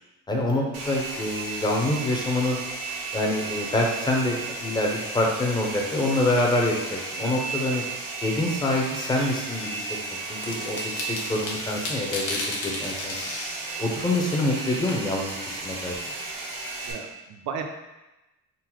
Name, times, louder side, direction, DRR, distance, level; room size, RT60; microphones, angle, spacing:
voice 1, 0.3-2.6 3.1-7.8 8.2-9.9 10.3-10.8 11.1-13.2 13.8-16.0, left 1 dB, 15° left, -1 dB, 0.5 m, -26 dB
Domestic sounds home sounds, 0.7-16.9, right 3 dB, 85° right, 1.0 m, -34 dB
sound 1, 10.1-16.9, left 2 dB, 50° left, 0.9 m, -36 dB
voice 2, 16.8-17.6, right 7 dB, 65° right, 4 dB, 0.6 m, -35 dB
3.8 x 2.0 x 4.4 m, 1.0 s
cardioid pair, 150°, 32 cm